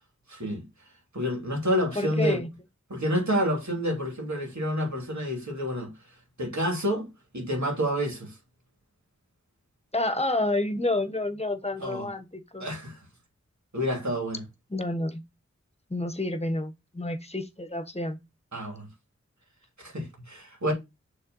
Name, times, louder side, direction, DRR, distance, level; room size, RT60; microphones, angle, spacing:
voice 1, 0.3-0.6 1.1-2.4 2.9-5.9 6.4-7.1 7.3-8.4 11.8-12.1 12.6-13.0 13.7-14.4 18.5-18.9 19.8-20.7, equal, 70° right, 3.0 m, -28 dB
voice 2, 2.0-2.5 9.9-12.7 14.7-15.2 15.9-18.2, left 2 dB, 20° left, 1.2 m, -29 dB
6.7 x 3.6 x 5.4 m
wide cardioid pair, 50°, 29 cm